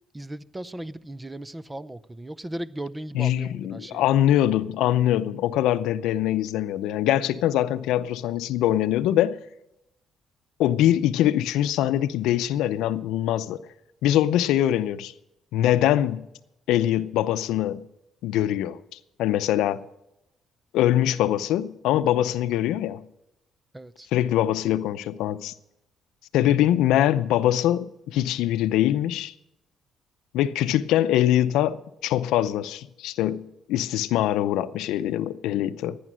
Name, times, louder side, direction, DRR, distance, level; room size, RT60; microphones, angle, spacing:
voice 1, 0.1-4.0 22.3-22.4 23.7-24.1 35.5-35.7, right 1 dB, 15° right, 0.6 m, -37 dB
voice 2, 3.1-9.4 10.6-13.6 14.0-15.1 15.5-16.2 16.7-17.8 18.2-18.8 19.2-19.8 20.7-23.0 24.1-25.5 26.3-29.3 30.3-33.4 33.7-36.0, left 12 dB, 90° left, 0.6 m, -23 dB
15.5 x 10.0 x 6.2 m
cardioid pair, 90°, 0 cm